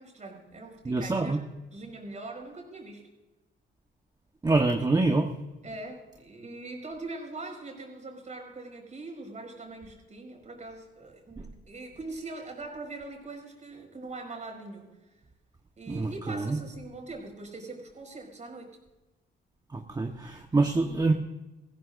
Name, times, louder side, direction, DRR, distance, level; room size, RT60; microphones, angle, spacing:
voice 1, 0.0-1.4 1.7-3.0 5.6-15.0 15.8-18.8, right 2 dB, 35° right, 2 dB, 5.0 m, -42 dB
voice 2, 0.8-1.4 4.4-5.3 11.4-11.5 15.9-16.6 19.7-21.1, right 3 dB, 20° right, 3 dB, 1.1 m, -26 dB
19.5 x 15.0 x 2.6 m, 1.1 s
cardioid pair, 90°, 20 cm